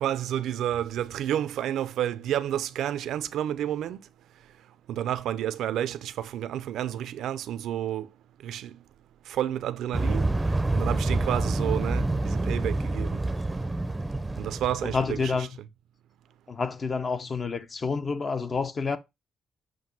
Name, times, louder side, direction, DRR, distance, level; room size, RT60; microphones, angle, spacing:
voice 1, 0.0-4.0 4.9-8.1 8.4-8.8 9.3-10.3 10.7-13.2 14.4-15.5, right 11 dB, 80° right, 0.5 m, -30 dB
sound 1, 9.9-15.3, right 2 dB, 15° right, 0.6 m, -27 dB
voice 2, 14.8-15.5 16.5-19.0, left 4 dB, 40° left, 0.7 m, -28 dB
7.7 x 2.6 x 5.3 m
cardioid pair, 90°, 0 cm